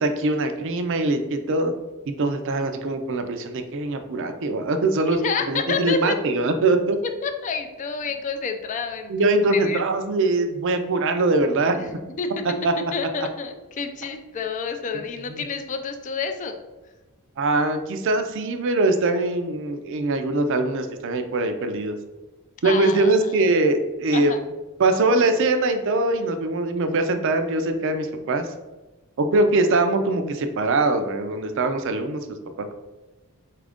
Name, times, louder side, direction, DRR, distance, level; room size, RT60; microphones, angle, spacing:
voice 1, 0.0-1.7 2.1-5.2 5.5-7.0 9.1-11.7 12.6-12.7 15.3-15.4 17.4-22.0 22.6-24.3 24.8-28.5 29.2-32.7, right 2 dB, 55° right, 7 dB, 0.4 m, -22 dB
voice 2, 5.1-6.2 7.0-9.3 9.5-9.8 11.7-12.3 12.9-16.5 22.6-23.3 24.1-24.4, left 5 dB, 35° left, 6 dB, 0.3 m, -29 dB
4.4 x 2.5 x 3.4 m, 1.1 s
head